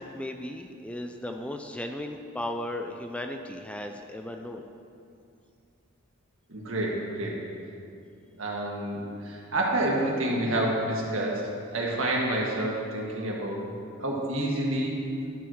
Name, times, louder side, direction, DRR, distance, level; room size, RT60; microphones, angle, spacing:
voice 1, 0.0-4.6, left 1 dB, 5° left, 4 dB, 0.3 m, -36 dB
voice 2, 6.5-7.4 8.4-13.6 14.0-15.0, right 1 dB, 70° right, -2 dB, 1.7 m, -28 dB
12.0 x 4.6 x 6.3 m, 2.5 s
head